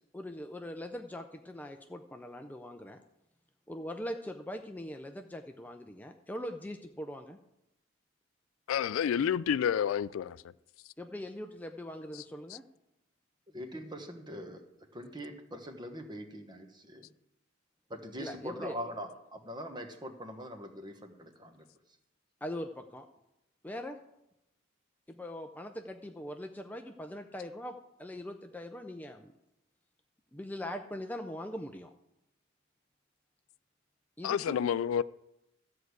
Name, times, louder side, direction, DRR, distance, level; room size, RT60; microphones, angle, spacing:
voice 1, 0.1-3.0 3.7-7.4 11.0-12.6 18.2-18.8 22.4-23.1 23.6-24.0 25.1-29.3 30.3-31.9 34.2-34.6, left 1 dB, 10° left, 0.5 m, -41 dB
voice 2, 8.7-10.4 34.2-35.0, left 8 dB, 80° left, 0.3 m, -29 dB
voice 3, 13.5-14.6 14.9-17.1 17.9-21.7, equal, 20° right, 1.1 m, -42 dB
13.5 x 4.8 x 8.0 m
head